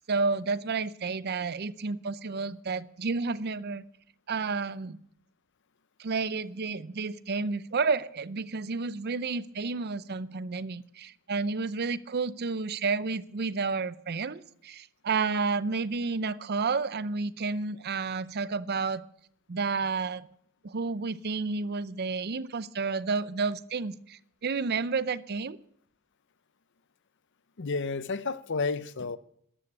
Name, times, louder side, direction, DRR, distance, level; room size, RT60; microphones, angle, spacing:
voice 1, 0.1-3.8 4.3-5.0 6.0-19.0 19.5-20.2 20.6-25.6, right 4 dB, 45° right, 0.6 m, -31 dB
voice 2, 27.6-29.2, left 4 dB, 55° left, 0.7 m, -31 dB
14.0 x 11.0 x 8.7 m
head